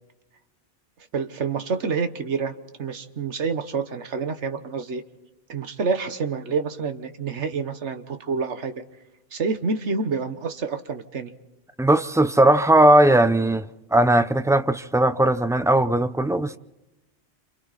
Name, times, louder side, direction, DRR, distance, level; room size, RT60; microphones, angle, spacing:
voice 1, 1.1-2.5 2.8-5.0 5.5-8.7 9.3-11.3, right 5 dB, 70° right, 1.6 m, -28 dB
voice 2, 11.8-13.6 13.9-16.6, right 1 dB, 5° right, 0.3 m, -18 dB
28.5 x 27.0 x 4.2 m
omnidirectional pair, 1.2 m